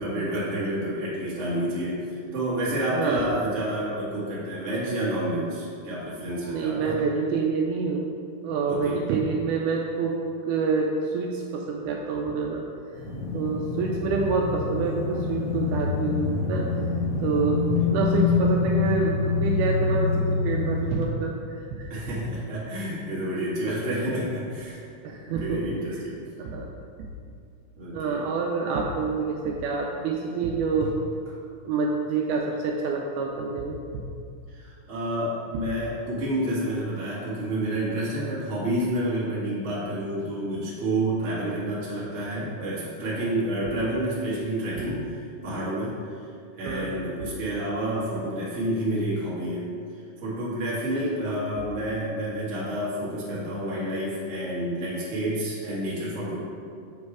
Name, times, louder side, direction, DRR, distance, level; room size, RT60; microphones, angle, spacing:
voice 1, 0.0-7.0 8.7-9.0 17.8-17.9 21.9-24.8 25.4-26.1 27.8-28.2 34.5-46.3 46.6-49.6 49.9-56.4, right 1 dB, 60° right, -8 dB, 0.7 m, -29 dB
voice 2, 2.9-3.3 6.5-8.1 8.4-10.2 10.4-12.7 13.3-16.7 17.2-17.6 17.9-21.3 21.7-22.1 23.7-23.8 25.0-25.6 26.4-26.7 27.9-30.9 31.6-33.8 43.7-43.8 46.6-46.9 50.9-51.4, right 4 dB, 80° right, 0 dB, 1.8 m, -27 dB
sound 1, 12.9-20.9, left 4 dB, 45° left, 2.0 m, -26 dB
7.1 x 3.2 x 4.8 m, 2.3 s
omnidirectional pair, 3.9 m